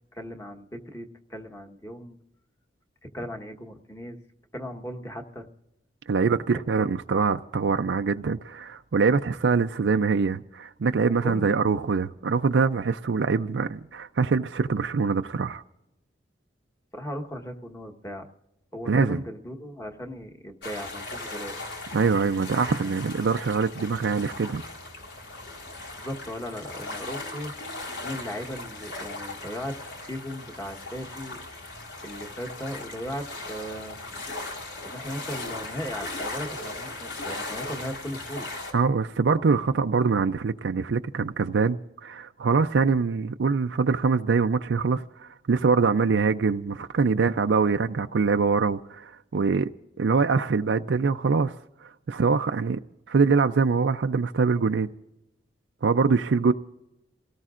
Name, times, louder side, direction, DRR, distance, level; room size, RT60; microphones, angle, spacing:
voice 1, 0.1-2.2 3.0-4.2 4.5-5.5 6.6-6.9 11.2-11.6 16.9-18.3 18.7-21.7 25.9-27.5 28.0-29.8 30.0-31.4 32.0-34.0 34.8-38.5, equal, 15° left, 1.2 m, -37 dB
voice 2, 6.1-15.6 18.9-19.2 21.9-24.6 38.7-49.7 50.0-51.5 51.8-52.8 53.1-54.9 55.8-56.5, right 5 dB, 85° right, 0.5 m, -24 dB
sound 1, 20.6-38.7, left 2 dB, 75° left, 4.0 m, -38 dB
28.5 x 18.0 x 2.5 m
head